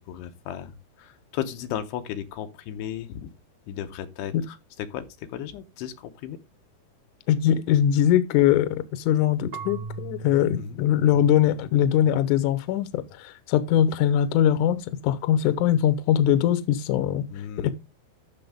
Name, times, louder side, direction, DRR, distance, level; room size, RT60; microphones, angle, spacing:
voice 1, 0.0-3.3 3.7-6.4 10.6-10.8 17.3-17.7, left 10 dB, 90° left, 3.0 m, -35 dB
voice 2, 7.3-17.3 17.6-17.7, left 10 dB, 70° left, 2.0 m, -22 dB
Marimba xylophone / Wood, 9.5-12.4, right 5 dB, 75° right, 1.0 m, -40 dB
12.0 x 6.4 x 3.6 m
omnidirectional pair, 4.7 m